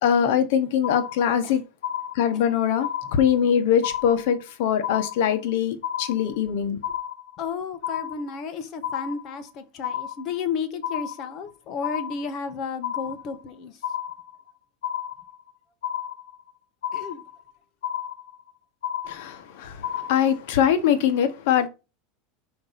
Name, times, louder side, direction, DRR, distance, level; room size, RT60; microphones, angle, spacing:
voice 1, 0.0-1.6 2.1-6.8 19.1-21.7, left 9 dB, 70° left, 1.4 m, -22 dB
sound 1, 0.8-1.5 1.8-2.5 2.8-3.5 3.8-4.5 4.8-5.5 5.8-6.5 6.8-7.5 7.8-8.5 8.8-9.5 9.8-10.5 10.8-11.5 11.8-12.5 12.8-13.5 13.8-14.5 14.8-15.5 15.8-16.5 16.8-17.5 17.8-18.5 18.8-19.5 19.8-20.5, left 10 dB, 90° left, 1.4 m, -32 dB
voice 2, 7.4-13.8 16.9-17.2, left 5 dB, 40° left, 1.4 m, -32 dB
5.2 x 5.1 x 5.8 m
supercardioid pair, 140°, 0 cm